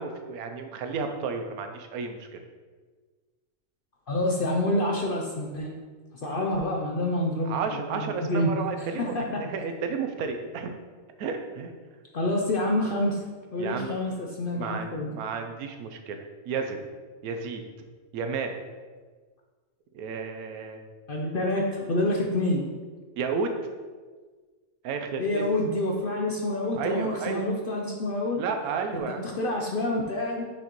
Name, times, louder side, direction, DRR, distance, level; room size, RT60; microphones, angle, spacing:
voice 1, 0.0-2.4 7.5-10.7 11.2-11.7 13.6-14.0 14.5-16.9 17.2-17.6 18.1-18.6 19.9-20.8 23.2-23.5 24.8-25.4 26.8-27.5 28.4-29.3, right 5 dB, 85° right, 5 dB, 1.1 m, -32 dB
voice 2, 4.1-5.7 6.2-8.5 8.8-9.4 12.1-13.2 13.5-15.1 21.1-22.6 25.2-28.4 28.9-30.4, left 1 dB, 55° left, 0 dB, 0.6 m, -27 dB
6.3 x 5.1 x 3.0 m, 1.4 s
omnidirectional pair, 1.5 m